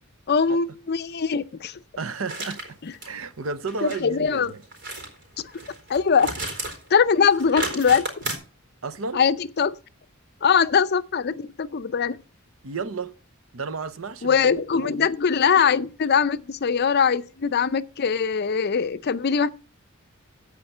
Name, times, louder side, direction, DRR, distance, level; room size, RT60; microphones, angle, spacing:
voice 1, 0.3-1.8 2.8-2.9 3.8-4.5 5.9-6.3 6.9-8.0 9.1-9.7 10.4-12.2 14.2-19.5, left 6 dB, 50° left, 0.5 m, -22 dB
voice 2, 2.0-2.6 3.0-4.6 8.8-9.2 12.6-13.1 13.5-14.4 14.8-15.1, right 4 dB, 75° right, 0.8 m, -32 dB
sound 1, 2.3-2.7 3.0-3.1 3.7-4.0 4.7-5.1 5.5-6.9 7.2-8.3, right 2 dB, 55° right, 4.1 m, -32 dB
15.0 x 5.1 x 5.4 m
head